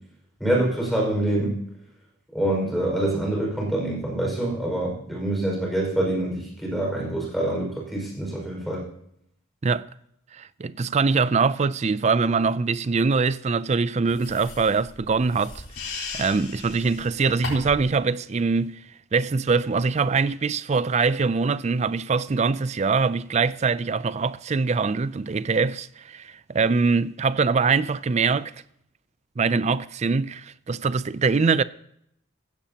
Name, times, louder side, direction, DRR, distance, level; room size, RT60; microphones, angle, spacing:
voice 1, 0.4-1.6 2.3-8.8, right 1 dB, ahead, 5.2 m, -25 dB
voice 2, 10.3-15.6 16.1-18.8 19.1-28.5 29.4-31.6, right 4 dB, 30° right, 0.4 m, -23 dB
sound 1, 14.1-17.9, left 3 dB, 90° left, 4.2 m, -37 dB
16.0 x 15.5 x 2.9 m
head